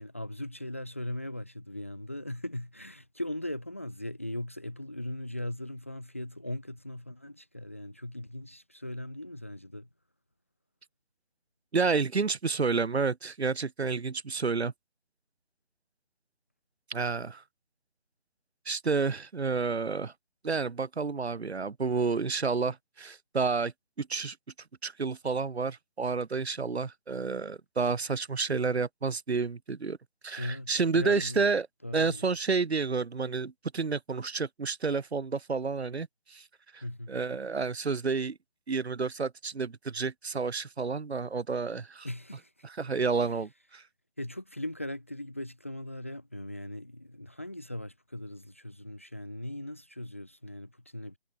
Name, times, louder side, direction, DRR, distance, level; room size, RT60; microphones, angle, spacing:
voice 1, 0.0-9.9 30.4-31.5 31.8-32.3 36.8-37.1 42.0-42.7 44.2-51.2, left 1 dB, 15° left, 0.7 m, -39 dB
voice 2, 11.7-14.7 16.9-17.4 18.6-20.1 20.4-23.7 24.0-24.4 24.8-30.0 30.2-31.7 31.9-36.4 36.7-38.4 38.7-42.1 42.6-43.8, right 4 dB, 80° right, 1.5 m, -30 dB
figure-of-eight pair, 170°, 32 cm